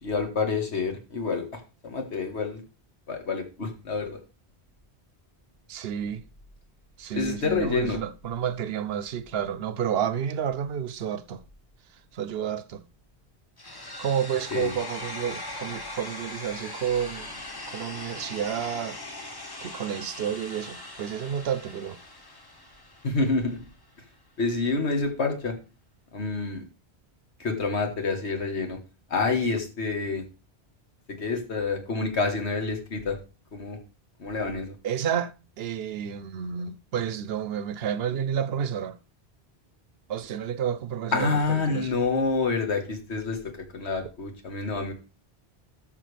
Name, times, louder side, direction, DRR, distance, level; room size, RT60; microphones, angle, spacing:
voice 1, 0.0-2.6 3.1-4.2 7.1-8.0 14.5-14.8 23.0-23.6 24.4-25.5 26.1-26.6 27.4-28.8 29.1-30.2 31.1-33.2 33.5-33.8 34.2-34.8 41.1-43.4 43.7-44.9, left 4 dB, 85° left, 1.8 m, -28 dB
voice 2, 5.7-6.2 7.0-11.4 12.1-12.8 14.0-17.4 17.7-19.0 19.6-22.0 34.8-39.0 40.1-41.9, right 8 dB, 70° right, 0.8 m, -30 dB
sound 1, 13.6-23.6, left 2 dB, 25° left, 0.9 m, -40 dB
13.0 x 5.9 x 3.3 m
omnidirectional pair, 1.1 m